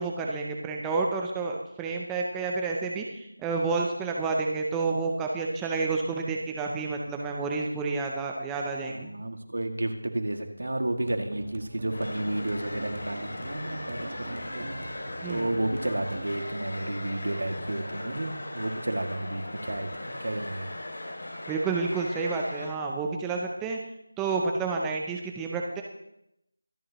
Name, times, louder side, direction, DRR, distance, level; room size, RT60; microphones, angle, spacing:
voice 1, 0.0-9.1 15.2-15.5 21.5-23.8 24.2-25.8, right 4 dB, 5° right, 0 dB, 0.5 m, -30 dB
voice 2, 8.9-20.7, right 1 dB, 75° right, 4 dB, 2.2 m, -32 dB
sound 1, 11.0-18.0, right 2 dB, 35° right, 1.3 m, -44 dB
sound 2, 11.9-22.7, left 1 dB, 65° left, 6.0 m, -38 dB
24.5 x 9.6 x 3.0 m, 0.80 s
figure-of-eight pair, 175°, 0 cm